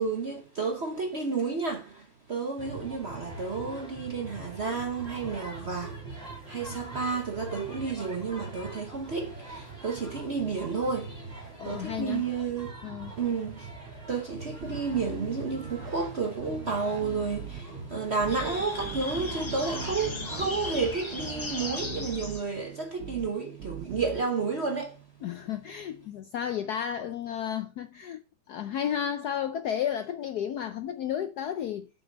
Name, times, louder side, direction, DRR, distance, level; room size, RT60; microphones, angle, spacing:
voice 1, 0.0-12.7 13.1-13.7 14.0-25.1, right 4 dB, 50° right, 0.8 m, -31 dB
sound 1, 2.6-20.5, right 3 dB, 20° right, 3.5 m, -43 dB
voice 2, 11.6-12.2 12.8-13.1 25.2-28.2 28.5-31.9, left 9 dB, 75° left, 0.9 m, -32 dB
sound 2, 14.6-16.1 16.4-17.6 18.2-18.5 18.8-20.9 21.2-22.4 23.0-23.3 23.6-24.2, right 3 dB, 85° right, 2.6 m, -41 dB
sound 3, 18.3-22.7, left 2 dB, 35° left, 0.4 m, -37 dB
7.8 x 6.0 x 5.1 m
omnidirectional pair, 2.3 m